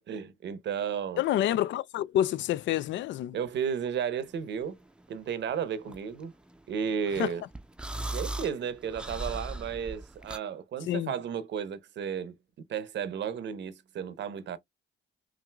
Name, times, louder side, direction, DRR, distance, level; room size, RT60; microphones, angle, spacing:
voice 1, 0.0-1.2 3.3-4.8 5.1-6.3 6.7-7.4 8.1-12.4 12.7-14.6, right 7 dB, 65° right, 0.8 m, -33 dB
voice 2, 1.2-3.4 7.2-7.3 10.9-11.1, left 12 dB, 70° left, 0.4 m, -28 dB
sound 1, 4.2-10.4, right 2 dB, 5° right, 0.5 m, -39 dB
5.8 x 2.6 x 2.2 m
cardioid pair, 90°, 20 cm